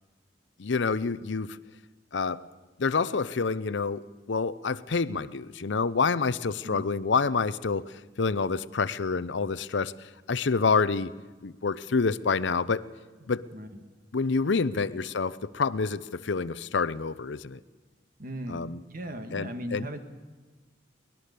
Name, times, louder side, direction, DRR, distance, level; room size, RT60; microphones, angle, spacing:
voice 1, 0.6-1.6 2.1-2.4 2.8-9.9 10.3-11.1 11.4-12.9 13.3-13.5 14.1-17.6 18.5-18.8 19.3-19.9, left 4 dB, 70° left, 17 dB, 0.6 m, -27 dB
voice 2, 18.2-18.6 18.9-20.0, equal, 45° right, 7 dB, 1.9 m, -37 dB
23.0 x 19.0 x 6.8 m, 1.3 s
head